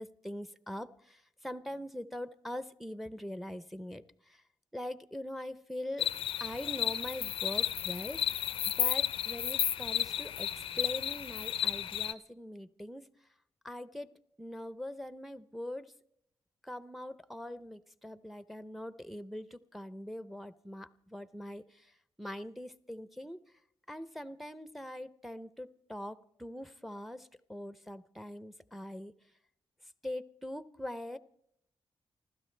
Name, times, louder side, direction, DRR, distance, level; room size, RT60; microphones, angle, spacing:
voice 1, 0.0-4.4 4.7-6.1 6.4-8.2 8.8-13.1 13.6-14.1 14.4-15.9 16.6-21.6 22.2-23.4 23.9-29.1 30.0-31.2, left 1 dB, ahead, 14 dB, 0.6 m, -42 dB
sound 1, 6.0-12.1, left 10 dB, 90° left, 0.5 m, -33 dB
29.5 x 12.5 x 3.3 m, 0.70 s
wide cardioid pair, 110°, 9 cm